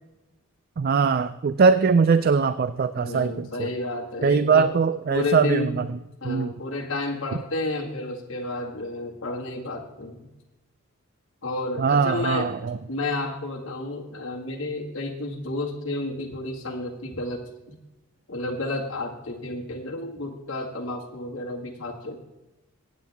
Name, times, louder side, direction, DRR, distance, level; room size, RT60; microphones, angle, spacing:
voice 1, 0.8-3.7 4.2-6.0 6.2-6.5 11.8-12.8, right 5 dB, 45° right, 13 dB, 0.3 m, -21 dB
voice 2, 3.0-4.7 5.1-5.7 6.2-10.3 11.4-12.5 12.9-17.4 17.7-17.8 18.3-22.2, left 2 dB, 60° left, -3 dB, 2.0 m, -31 dB
23.5 x 8.7 x 3.5 m, 1.0 s
head